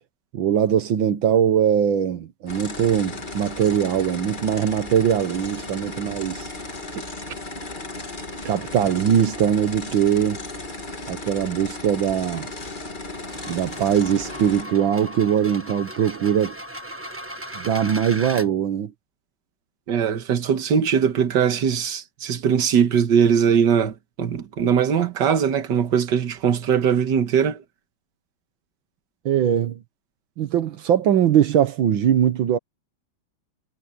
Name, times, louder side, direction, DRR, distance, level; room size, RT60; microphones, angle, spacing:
voice 1, 0.3-6.5 8.5-10.4 11.1-12.5 13.5-16.6 17.6-18.9 29.3-29.8 30.4-32.6, right 9 dB, 80° right, 1.8 m, -21 dB
sound 1, 2.5-14.6, left 2 dB, 25° left, 2.3 m, -35 dB
sound 2, 13.2-18.5, equal, 10° right, 0.9 m, -37 dB
voice 2, 19.9-27.6, right 7 dB, 65° right, 2.0 m, -21 dB
omnidirectional pair, 2.1 m